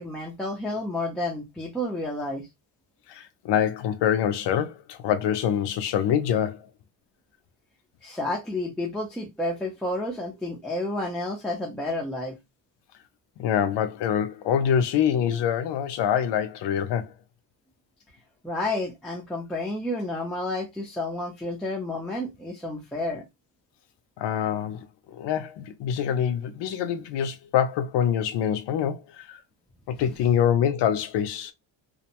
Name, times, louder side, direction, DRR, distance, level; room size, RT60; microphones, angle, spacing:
voice 1, 0.0-2.5 8.0-12.4 18.4-23.2, left 1 dB, ahead, 0.5 m, -30 dB
voice 2, 3.1-6.7 13.4-17.1 24.2-29.4 29.9-31.5, left 9 dB, 65° left, 0.6 m, -25 dB
2.6 x 2.1 x 2.8 m
cardioid pair, 145°, 46 cm